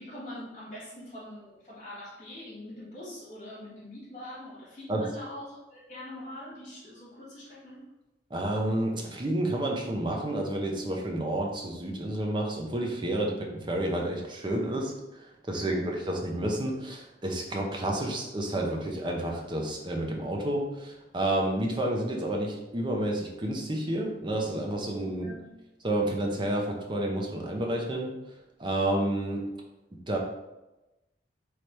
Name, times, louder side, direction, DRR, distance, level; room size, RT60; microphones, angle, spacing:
voice 1, 0.0-7.8 25.0-25.6, left 1 dB, 30° left, -8 dB, 1.5 m, -43 dB
voice 2, 8.3-25.3 25.8-28.1 28.6-29.4 30.1-30.2, right 1 dB, 25° right, 1 dB, 0.6 m, -30 dB
3.3 x 3.2 x 4.2 m, 1.0 s
head